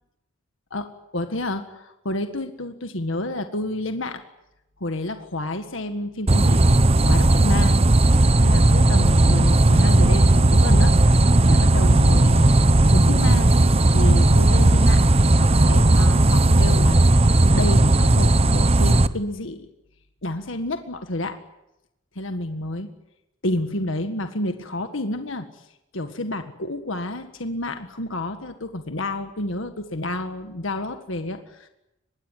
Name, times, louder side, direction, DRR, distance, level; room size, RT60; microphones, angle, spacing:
voice 1, 0.7-4.2 4.8-7.8 8.4-11.0 11.5-12.5 12.9-13.5 13.9-15.0 15.4-17.2 17.5-19.7 20.2-21.4 22.2-22.9 23.4-25.6 25.9-31.7, left 1 dB, 70° left, 7 dB, 1.8 m, -29 dB
sound 1, 6.3-19.1, right 2 dB, 30° right, 0.9 m, -16 dB
25.0 x 21.0 x 9.3 m, 0.90 s
head